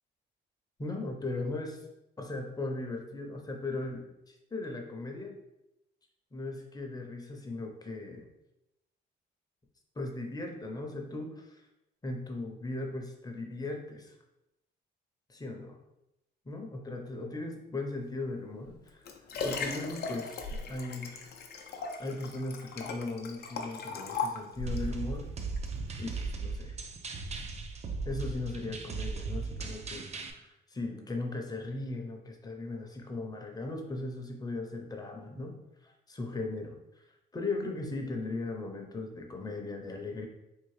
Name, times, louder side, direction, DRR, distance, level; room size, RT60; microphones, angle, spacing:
voice 1, 0.8-1.8 2.2-5.3 6.3-8.2 10.0-11.7 12.0-14.2 15.3-15.8 16.4-19.1 19.4-21.2 22.0-25.3 26.0-26.8 28.0-35.6 35.8-37.0 37.3-40.3, left 2 dB, 20° left, 2 dB, 0.7 m, -38 dB
Liquid, 18.6-24.9 25.6-25.7, left 4 dB, 55° left, 0.5 m, -37 dB
sound 1, 24.7-30.3, right 4 dB, 35° right, 0.5 m, -37 dB
3.6 x 2.5 x 3.2 m, 0.90 s
cardioid pair, 90°, 20 cm